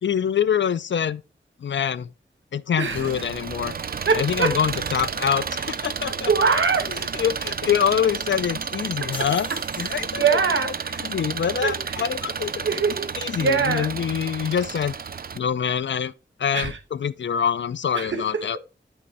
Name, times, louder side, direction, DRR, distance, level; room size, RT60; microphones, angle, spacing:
voice 1, 0.0-1.2 1.6-2.1 2.5-3.7 4.2-6.3 6.9-9.5 9.8-10.4 11.0-12.7 13.2-14.9 15.3-16.1 16.4-18.6, left 8 dB, 70° left, 0.4 m, -25 dB
Engine, 2.8-15.4, right 6 dB, 50° right, 0.4 m, -31 dB
voice 2, 2.8-3.1 4.1-4.5 6.0-7.2 9.8-11.1 11.6-11.9 12.6-13.1 13.4-13.9 16.5-16.8 17.9-18.6, right 5 dB, 80° right, 1.1 m, -23 dB
sound 1, 9.1-10.6, left 2 dB, 25° left, 1.4 m, -42 dB
8.7 x 3.1 x 4.6 m
wide cardioid pair, 70°, 20 cm